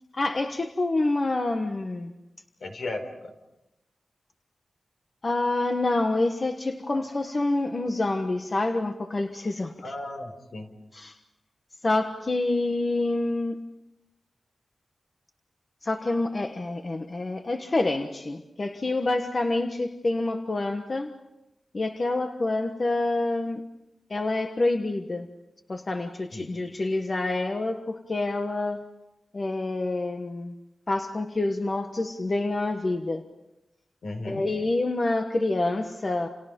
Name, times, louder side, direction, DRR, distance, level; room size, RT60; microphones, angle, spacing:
voice 1, 0.1-2.1 5.2-9.9 10.9-11.2 11.8-13.6 15.8-21.1 21.7-23.6 24.1-25.3 25.7-28.9 29.3-30.5 30.9-33.2 34.3-36.3, left 2 dB, 35° left, 5 dB, 1.3 m, -27 dB
voice 2, 2.6-3.3 6.9-7.0 9.8-10.7 26.3-26.5 34.0-34.5, left 2 dB, 70° left, 5 dB, 4.5 m, -36 dB
30.0 x 29.0 x 5.4 m, 0.91 s
wide cardioid pair, 145°, 0 cm